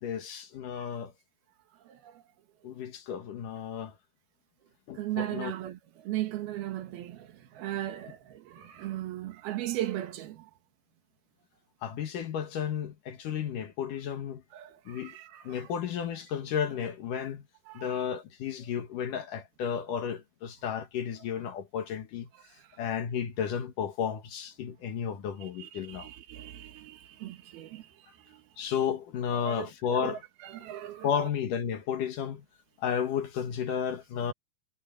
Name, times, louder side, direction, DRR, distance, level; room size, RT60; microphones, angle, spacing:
voice 1, 0.0-1.1 2.6-3.9 4.9-5.5 11.8-14.4 14.9-15.2 15.4-17.4 17.7-22.3 22.8-26.1 28.6-30.2 31.0-32.4 32.8-34.3, left 8 dB, 60° left, 2.6 m, -33 dB
voice 2, 1.9-2.2 4.9-10.5 14.5-15.7 17.7-18.0 22.6-22.7 25.4-28.5 29.3-31.3, right 14 dB, 70° right, 3.2 m, -38 dB
omnidirectional pair, 4.9 m